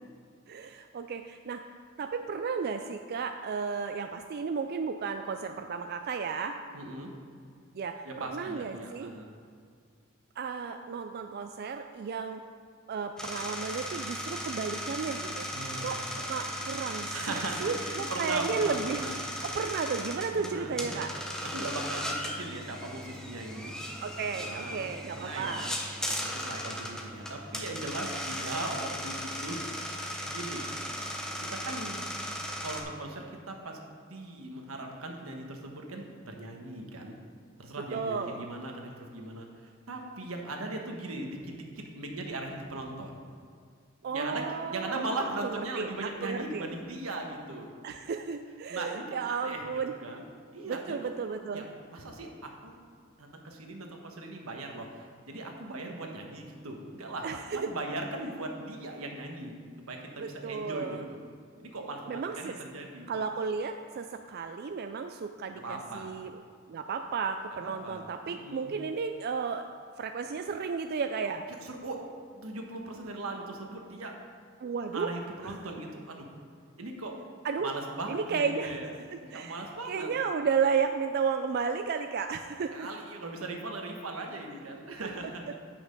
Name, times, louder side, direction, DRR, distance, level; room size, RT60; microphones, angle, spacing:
voice 1, 0.5-1.6 2.0-6.6 7.7-9.1 10.4-12.4 12.9-15.5 15.8-16.0 16.3-19.0 19.4-21.1 24.0-25.7 37.9-38.4 44.0-45.0 45.4-46.7 47.8-49.9 50.7-51.7 57.2-57.7 60.2-61.1 62.1-62.5 63.1-66.4 66.7-69.7 70.0-71.4 74.6-75.1 75.4-75.5 77.4-77.7 78.1-78.8 79.1-79.6 79.9-82.9, right 5 dB, 50° right, 6 dB, 0.4 m, -33 dB
voice 2, 6.7-7.1 8.0-9.3 15.5-16.0 17.1-19.1 20.4-23.7 24.3-29.6 30.2-30.7 31.5-32.1 32.6-33.8 34.1-37.1 37.6-39.5 39.9-43.2 44.1-44.4 44.7-47.7 48.7-50.2 50.5-51.0 51.5-52.8 53.2-59.5 59.8-61.2 61.6-63.1 65.5-66.1 67.6-68.0 68.3-68.7 71.6-72.0 72.3-74.1 74.9-76.3 76.8-77.1 77.6-78.9 79.2-80.1 82.7-85.5, right 2 dB, 90° right, 2 dB, 1.3 m, -39 dB
sound 1, 13.2-32.8, equal, 5° left, 0.9 m, -37 dB
8.9 x 6.0 x 5.2 m, 2.2 s
head